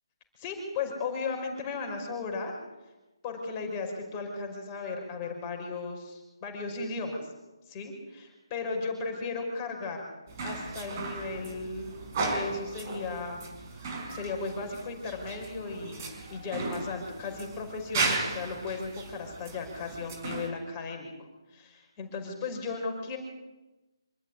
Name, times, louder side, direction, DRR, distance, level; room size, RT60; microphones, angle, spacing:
voice 1, 0.4-2.5 3.2-7.3 7.7-10.0 10.4-11.9 12.3-13.5 14.1-23.2, left 4 dB, 25° left, 2 dB, 5.5 m, -36 dB
sound 1, 10.3-20.5, right 3 dB, 35° right, 4.9 m, -36 dB
26.0 x 14.5 x 9.8 m, 1.0 s
figure-of-eight pair, 150°, 3 cm